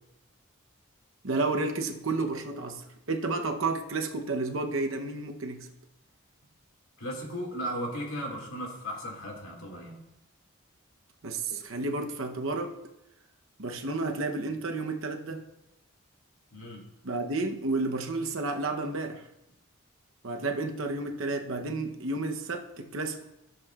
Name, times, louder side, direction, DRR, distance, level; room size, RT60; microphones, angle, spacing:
voice 1, 1.2-5.7 11.2-12.8 13.6-15.5 17.0-19.2 20.2-23.2, right 3 dB, 70° right, 0.9 m, -31 dB
voice 2, 7.0-10.0 16.5-16.8, equal, 80° left, 2.2 m, -36 dB
14.5 x 7.4 x 2.4 m
head